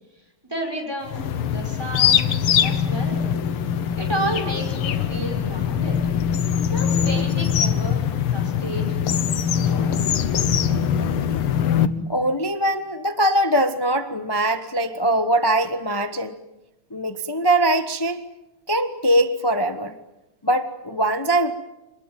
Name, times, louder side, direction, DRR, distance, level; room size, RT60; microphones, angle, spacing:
voice 1, 0.4-3.2 4.0-6.0 6.7-8.0 8.3-9.2 9.6-9.9, right 1 dB, 10° right, 2 dB, 6.1 m, -31 dB
sound 1, 1.1-11.9, left 8 dB, 85° left, 2.1 m, -22 dB
voice 2, 12.1-16.4 16.9-18.2 18.7-19.9 20.4-21.5, right 1 dB, 15° left, 9 dB, 0.8 m, -22 dB
27.0 x 20.0 x 9.1 m, 0.96 s
omnidirectional pair, 2.4 m